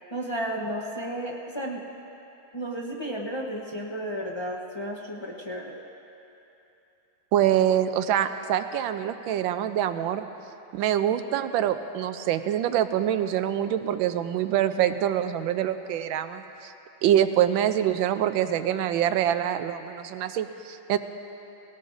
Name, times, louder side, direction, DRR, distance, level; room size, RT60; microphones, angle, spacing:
voice 1, 0.1-1.8 2.5-5.7, right 1 dB, 35° left, -2 dB, 0.4 m, -33 dB
voice 2, 7.3-10.2 10.7-16.7 17.0-21.0, right 10 dB, 90° right, 10 dB, 1.4 m, -25 dB
19.0 x 18.0 x 2.6 m, 2.9 s
omnidirectional pair, 2.1 m